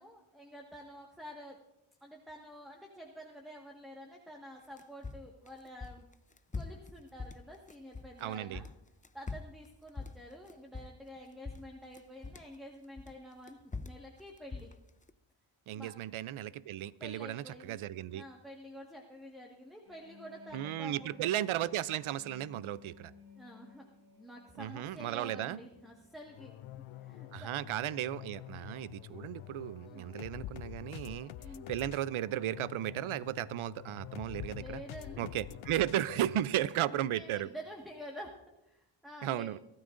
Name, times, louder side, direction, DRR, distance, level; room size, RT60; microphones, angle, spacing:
voice 1, 0.0-1.6 2.0-6.1 6.5-8.7 9.1-14.7 15.7-15.9 17.0-17.8 18.1-21.2 23.3-23.9 24.1-26.5 27.0-27.5 29.8-30.1 31.4-31.7 34.5-35.3 36.6-39.5, equal, ahead, 0 dB, 1.5 m, -49 dB
sound 1, 4.6-8.2 8.5-11.2 11.4-12.5 13.0-15.1, left 4 dB, 15° left, 0.5 m, -43 dB
voice 2, 8.2-8.6 15.7-18.2 20.5-23.1 24.6-25.6 27.3-31.3 31.7-34.8 35.2-37.5 39.2-39.6, right 12 dB, 80° right, 17 dB, 0.5 m, -35 dB
sound 2, 19.8-33.4 33.7-34.0, left 6 dB, 45° right, 4.2 m, -61 dB
sound 3, 26.3-36.4, left 13 dB, 80° left, 0.6 m, -47 dB
23.5 x 13.0 x 2.5 m, 0.88 s
cardioid pair, 65°, 48 cm